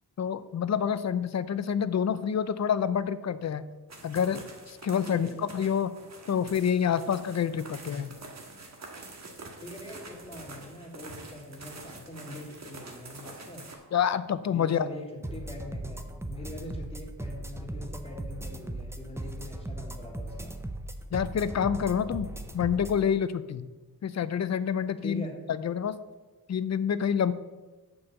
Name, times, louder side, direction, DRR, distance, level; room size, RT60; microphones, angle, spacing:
voice 1, 0.2-3.7 4.0-5.9 6.3-8.2 13.9-14.9 21.1-22.3 22.5-23.7 24.0-26.0 26.5-27.3, left 8 dB, 45° left, 15 dB, 0.5 m, -28 dB
sound 1, 3.9-13.8, right 2 dB, 45° right, 1.5 m, -46 dB
voice 2, 9.6-13.6 14.4-15.1 15.3-20.5 25.0-25.3, left 1 dB, 15° left, -1 dB, 2.1 m, -43 dB
sound 2, 15.2-23.0, right 1 dB, 5° right, 0.6 m, -38 dB
6.7 x 5.4 x 7.1 m, 1.2 s
wide cardioid pair, 105°, 39 cm